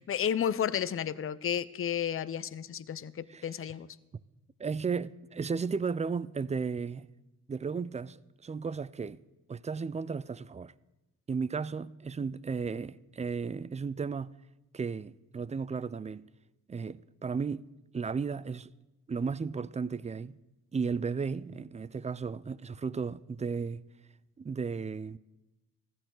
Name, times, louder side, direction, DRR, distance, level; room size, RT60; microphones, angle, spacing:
voice 1, 0.1-3.9, left 9 dB, 35° left, 0.6 m, -32 dB
voice 2, 4.6-7.1 7.5-9.2 9.5-10.7 11.3-14.3 14.7-16.3 16.7-17.6 17.9-18.7 19.1-20.4 20.7-23.8 24.4-25.2, right 5 dB, 20° right, 0.4 m, -34 dB
15.0 x 13.5 x 3.9 m
cardioid pair, 65°, 36 cm